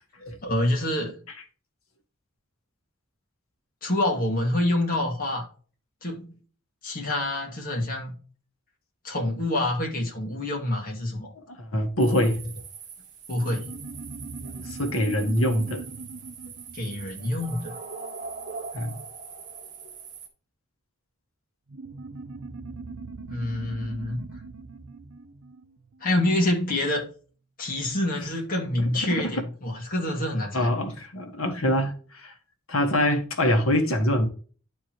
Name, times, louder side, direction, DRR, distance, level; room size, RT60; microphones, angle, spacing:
voice 1, 0.4-1.2 3.8-5.4 6.0-6.3 6.8-8.1 9.0-11.3 13.3-13.7 16.7-17.8 23.3-24.3 26.0-27.0 27.6-30.7, left 1 dB, 45° left, 2.4 m, -27 dB
voice 2, 11.3-12.5 14.4-15.8 18.7-19.0 28.8-29.2 30.5-32.3 32.7-34.3, equal, 80° left, 1.7 m, -25 dB
sound 1, 12.0-20.3, right 5 dB, 40° right, 1.5 m, -41 dB
sound 2, 13.4-18.3 21.7-26.6, right 3 dB, 80° right, 0.7 m, -41 dB
11.0 x 4.6 x 3.0 m
head